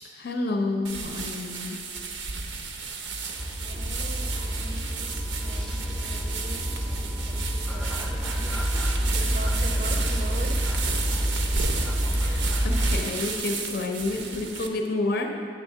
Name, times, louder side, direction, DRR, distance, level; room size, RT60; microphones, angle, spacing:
voice 1, 0.0-1.8 12.2-15.3, left 2 dB, 55° left, 3 dB, 0.5 m, -29 dB
sound 1, 0.8-14.7, right 4 dB, 85° right, 0.6 m, -33 dB
sound 2, 3.4-13.0, equal, 5° left, 0.5 m, -28 dB
voice 2, 3.6-10.7 11.1-11.3, right 2 dB, 45° right, 5 dB, 0.6 m, -42 dB
8.5 x 3.6 x 6.7 m, 2.5 s
head